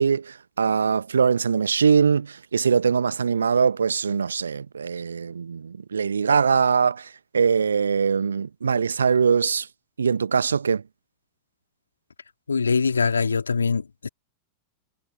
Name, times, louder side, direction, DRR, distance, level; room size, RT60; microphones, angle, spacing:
voice 1, 0.0-7.1 7.3-9.7 10.0-10.8, right 6 dB, 70° right, 1.1 m, -22 dB
voice 2, 12.5-14.1, left 5 dB, 75° left, 2.6 m, -23 dB
figure-of-eight pair, 90°, 0 cm